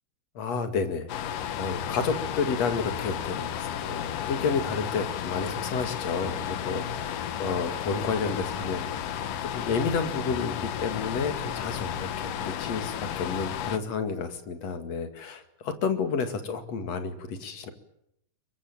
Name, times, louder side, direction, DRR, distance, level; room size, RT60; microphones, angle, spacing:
voice 1, 0.4-1.3 1.6-8.9 9.4-17.7, left 5 dB, 55° left, 8 dB, 3.2 m, -31 dB
sound 1, 1.1-13.8, left 9 dB, 85° left, 2.8 m, -33 dB
23.5 x 22.0 x 9.0 m, 0.77 s
omnidirectional pair, 3.7 m